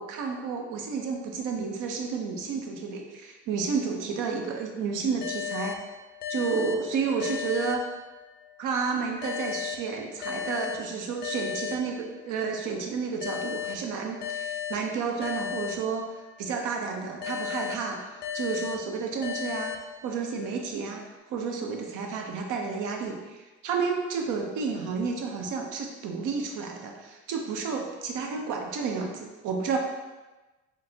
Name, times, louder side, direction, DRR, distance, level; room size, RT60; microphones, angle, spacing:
voice 1, 0.0-5.8 6.3-7.9 8.6-16.1 16.4-18.0 18.3-19.7 20.0-29.8, right 5 dB, 85° right, 2 dB, 0.6 m, -31 dB
sound 1, 5.2-8.5 9.2-12.5 13.2-16.5 17.2-20.5, left 8 dB, 35° left, 0.4 m, -36 dB
6.0 x 2.0 x 2.7 m, 1.2 s
cardioid pair, 90°, 30 cm